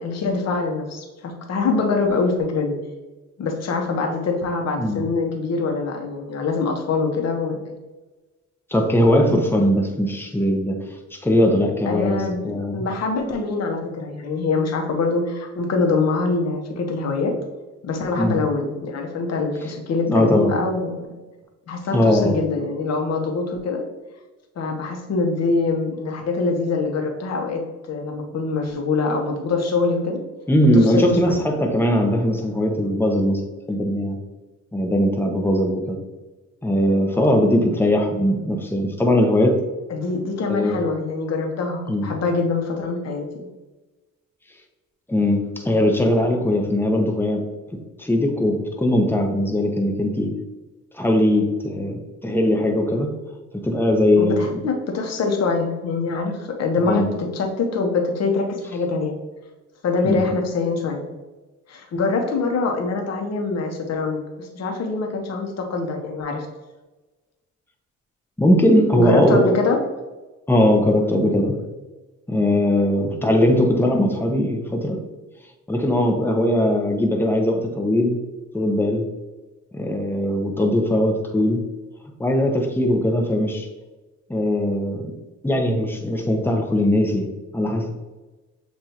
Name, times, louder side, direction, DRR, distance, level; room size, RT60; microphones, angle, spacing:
voice 1, 0.0-2.8 3.4-7.6 11.9-17.3 17.8-21.2 21.7-23.8 24.6-27.6 27.9-30.2 30.7-31.4 39.9-43.3 54.2-59.2 59.8-61.1 61.7-66.5 69.0-69.8, left 3 dB, 60° left, 2 dB, 1.0 m, -24 dB
voice 2, 8.7-10.8 11.1-12.9 18.1-18.4 20.1-20.5 21.9-22.4 30.5-33.4 33.7-34.2 34.7-36.0 36.6-39.6 40.5-40.8 41.9-42.1 45.1-47.4 48.0-50.3 50.9-53.1 53.6-54.6 56.8-57.1 60.0-60.2 68.4-69.4 70.5-71.6 72.3-75.0 75.7-78.2 78.5-79.1 79.7-81.6 82.2-83.7 84.3-85.0 85.4-87.9, left 1 dB, 5° left, 3 dB, 0.8 m, -20 dB
6.9 x 2.6 x 2.9 m, 1.2 s
cardioid pair, 90°, 30 cm